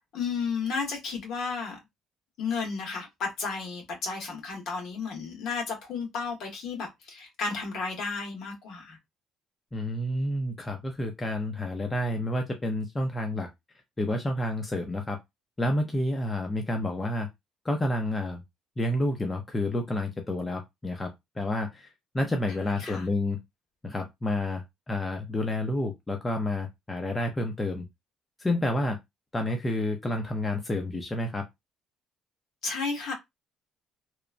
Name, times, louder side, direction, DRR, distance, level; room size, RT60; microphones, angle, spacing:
voice 1, 0.1-1.8 2.4-9.0 22.6-23.0 32.6-33.1, left 5 dB, 60° left, 1.3 m, -33 dB
voice 2, 9.7-13.5 14.0-15.2 15.6-17.3 17.6-18.4 18.8-21.9 22.1-23.4 23.8-27.8 28.4-29.0 29.3-31.4, left 1 dB, 15° left, 0.4 m, -29 dB
2.9 x 2.2 x 2.4 m
cardioid pair, 160°, 0 cm